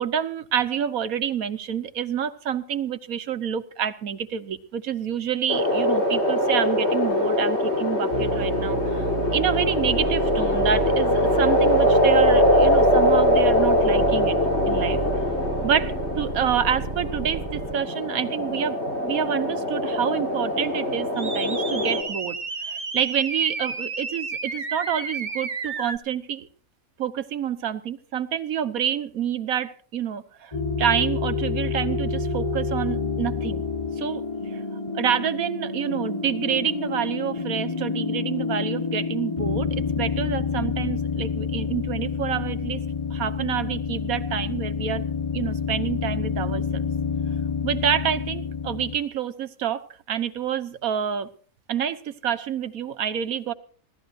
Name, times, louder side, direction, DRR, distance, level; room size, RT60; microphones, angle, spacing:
voice 1, 0.0-9.0 9.3-14.4 14.7-15.0 15.6-18.8 19.0-22.4 22.7-26.5 27.0-33.6 34.0-34.6 34.9-39.7 40.0-42.8 43.1-45.0 45.3-46.8 47.6-51.3 51.7-53.5, right 8 dB, 85° right, 12 dB, 1.5 m, -28 dB
sound 1, 5.5-22.0, left 1 dB, 50° left, 4.4 m, -22 dB
sound 2, 8.1-17.7 21.2-26.0, right 4 dB, 35° right, 1.4 m, -31 dB
sound 3, 30.5-49.0, left 5 dB, 30° left, 0.9 m, -28 dB
25.5 x 16.5 x 2.6 m, 0.43 s
omnidirectional pair, 1.4 m